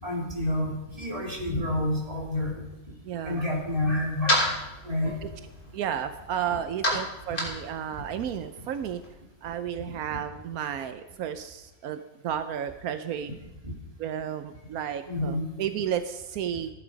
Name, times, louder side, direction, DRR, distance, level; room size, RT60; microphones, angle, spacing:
voice 1, 0.0-2.6 3.2-4.5 4.8-5.3 9.8-9.9 13.6-13.7 15.1-15.5, left 1 dB, 25° right, -2 dB, 3.3 m, -29 dB
voice 2, 3.0-3.4 5.2-5.3 5.7-9.0 9.4-13.3 14.0-16.7, right 9 dB, 85° right, 10 dB, 1.2 m, -32 dB
sound 1, 3.3-9.1, left 1 dB, 60° left, 3.9 m, -32 dB
14.5 x 11.0 x 5.1 m, 1.0 s
omnidirectional pair, 1.5 m